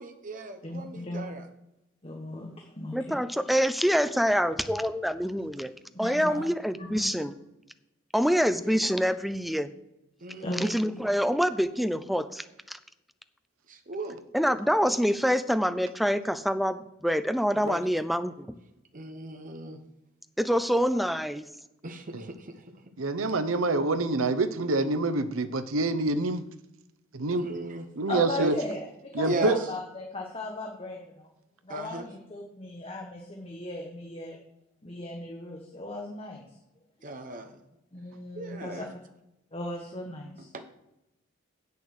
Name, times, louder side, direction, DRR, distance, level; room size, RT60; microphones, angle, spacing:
voice 1, 0.0-1.5 6.2-6.5 8.3-8.7 10.2-10.7 13.7-14.2 17.6-17.9 18.9-19.8 21.8-22.6 27.3-27.9 28.4-28.5 29.2-29.7 31.7-32.1 37.0-37.6 38.4-38.9 40.5-40.6, right 2 dB, 40° right, 6 dB, 0.9 m, -36 dB
voice 2, 0.6-1.2 2.0-3.2 5.9-6.4 6.8-7.3 10.4-10.6 10.9-11.0 28.1-31.3 31.6-34.4 34.8-36.4 37.9-38.9 39.5-40.5, left 2 dB, 30° left, 1 dB, 1.2 m, -37 dB
voice 3, 2.9-5.7 6.0-7.3 8.1-9.7 10.6-12.8 14.3-18.5 20.4-21.4, equal, ahead, 11 dB, 0.4 m, -26 dB
voice 4, 23.0-26.4 27.1-27.5 28.0-28.5 29.1-29.6, right 2 dB, 85° right, 12 dB, 0.8 m, -26 dB
8.4 x 6.9 x 6.4 m, 0.90 s
head